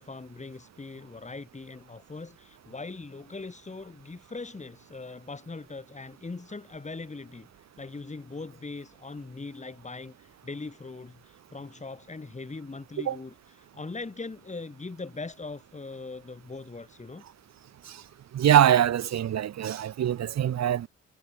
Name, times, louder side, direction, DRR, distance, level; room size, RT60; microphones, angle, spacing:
voice 1, 0.0-7.5 7.8-17.2, left 3 dB, 25° left, 6.6 m, -40 dB
voice 2, 18.3-20.9, right 10 dB, 60° right, 1.7 m, -23 dB
cardioid pair, 90°, 30 cm